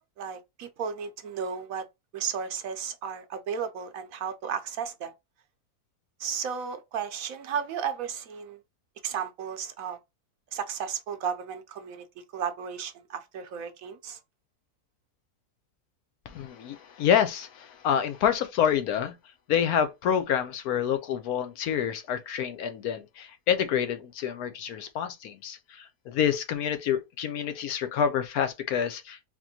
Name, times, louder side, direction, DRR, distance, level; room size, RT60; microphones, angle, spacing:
voice 1, 0.2-1.8 2.1-5.1 6.2-8.6 9.0-10.0 10.5-12.1 12.3-14.2, right 7 dB, 70° right, 0.9 m, -34 dB
voice 2, 16.3-19.1 19.5-29.3, left 8 dB, 75° left, 1.0 m, -27 dB
4.2 x 2.9 x 2.7 m
omnidirectional pair, 1.7 m